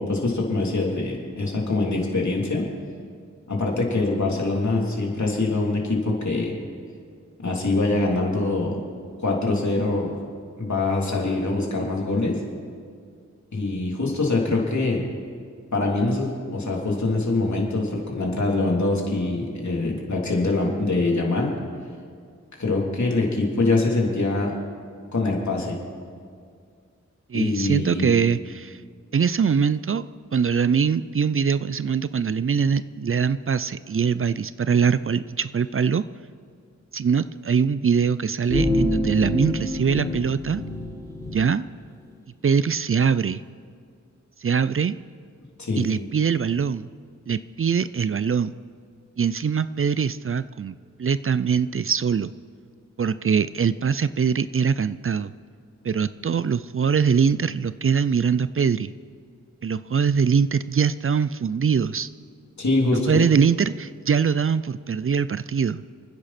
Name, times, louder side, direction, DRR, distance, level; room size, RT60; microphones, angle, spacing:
voice 1, 0.0-2.6 3.5-6.5 7.4-8.8 9.2-10.2 10.6-12.4 13.5-15.0 15.7-21.5 22.6-24.5 25.1-25.8 27.3-28.1 45.6-45.8 62.6-63.1, left 2 dB, 70° left, -2 dB, 3.2 m, -24 dB
voice 2, 27.3-28.8 29.1-30.1 30.3-36.0 36.9-40.6 41.3-41.7 42.4-43.4 44.4-45.0 45.8-46.9 47.3-48.5 49.2-52.3 53.0-55.3 55.8-58.9 59.6-62.1 63.1-65.8, right 6 dB, 45° right, 15 dB, 0.4 m, -22 dB
sound 1, 38.5-41.3, left 1 dB, 10° left, 4.6 m, -26 dB
29.5 x 10.0 x 4.3 m, 2.1 s
wide cardioid pair, 55°, 30 cm